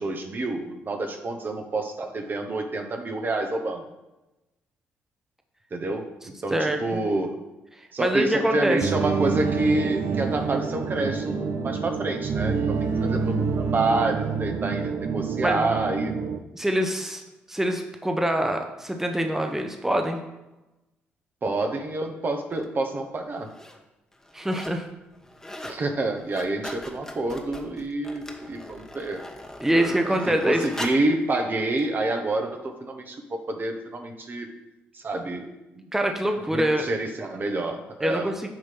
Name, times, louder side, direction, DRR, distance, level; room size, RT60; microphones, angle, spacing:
voice 1, 0.0-3.8 5.7-6.1 6.4-7.4 7.9-16.1 21.4-23.5 25.6-29.2 29.6-34.5 34.9-35.8 36.5-38.3, right 2 dB, 40° right, 4 dB, 1.1 m, -28 dB
voice 2, 6.5-7.0 8.0-8.8 15.4-15.7 16.5-17.2 17.5-20.2 24.3-24.9 29.6-30.6 35.9-36.9 38.0-38.5, right 1 dB, 10° right, 4 dB, 0.9 m, -24 dB
sound 1, 8.8-16.4, right 5 dB, 60° right, 0.6 m, -27 dB
sound 2, 22.5-22.6 23.3-23.8 24.1-24.8 25.1-25.8 26.1-31.1 31.8-31.9, left 1 dB, 10° left, 1.2 m, -40 dB
8.7 x 3.2 x 5.9 m, 1.0 s
hypercardioid pair, 50°, 5 cm